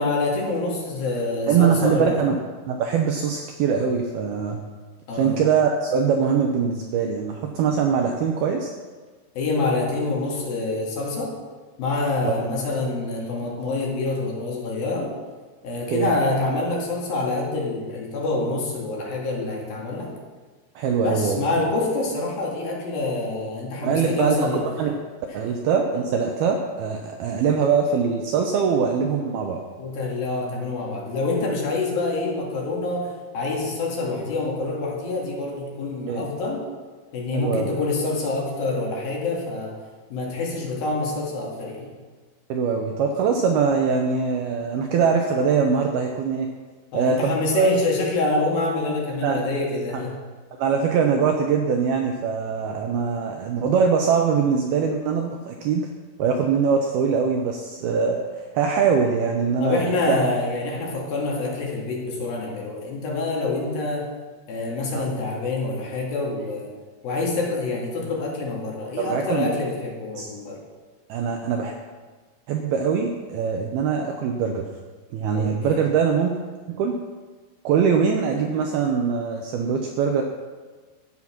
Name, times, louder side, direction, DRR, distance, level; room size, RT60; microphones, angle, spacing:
voice 1, 0.0-2.3 5.1-5.4 9.4-11.4 11.8-15.1 15.6-20.1 21.0-24.6 25.3-25.4 29.8-36.7 37.1-39.8 40.1-41.9 46.9-50.2 59.6-64.1 64.5-66.7 67.0-70.6 75.3-75.8, left 3 dB, 55° left, -2 dB, 3.7 m, -26 dB
voice 2, 1.5-2.4 2.7-4.6 5.1-8.7 12.2-12.4 15.9-16.1 20.8-21.5 23.8-24.5 24.8-24.9 25.3-29.6 36.1-36.3 37.3-37.7 42.5-46.5 46.9-47.7 49.2-49.5 49.9-50.0 50.6-55.9 56.2-60.2 64.9-65.0 69.0-69.5 70.1-70.3 71.1-71.7 72.5-74.7 75.1-76.3 76.7-77.0 77.6-80.2, right 6 dB, 75° right, 2 dB, 2.3 m, -22 dB
13.5 x 9.4 x 5.9 m, 1.4 s
omnidirectional pair, 5.4 m